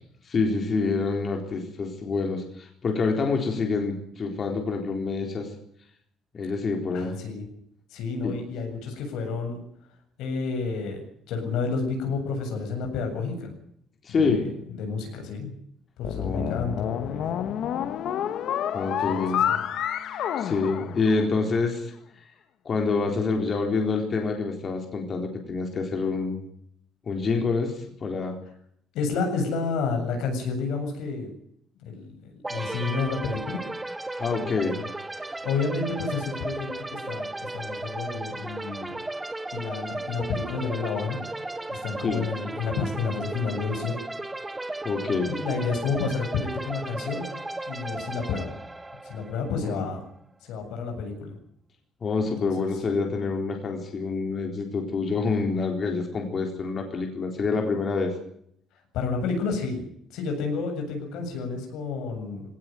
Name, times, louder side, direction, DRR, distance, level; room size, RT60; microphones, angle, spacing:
voice 1, 0.2-5.5 6.3-7.2 8.2-8.4 14.0-14.4 16.2-16.6 18.7-19.4 20.4-21.9 22.6-26.5 27.1-28.4 34.2-34.8 42.0-42.2 44.8-45.4 49.6-49.9 52.0-58.1, left 4 dB, 35° left, 2 dB, 4.0 m, -27 dB
voice 2, 6.9-7.4 7.9-9.6 10.2-11.0 11.3-13.5 14.1-14.4 14.7-15.5 16.0-17.3 19.0-19.6 28.9-31.3 31.8-33.6 34.6-34.7 35.2-38.9 39.5-41.3 41.7-44.0 45.3-47.3 47.7-48.5 49.0-50.0 50.5-51.4 52.4-52.7 58.9-59.8 60.1-62.4, left 4 dB, 90° left, 4 dB, 7.8 m, -30 dB
sound 1, 16.0-21.5, left 9 dB, 65° left, 1.8 m, -29 dB
sound 2, 32.4-50.1, right 2 dB, 10° right, 1.4 m, -35 dB
19.5 x 18.0 x 9.2 m, 0.69 s
cardioid pair, 155°, 0 cm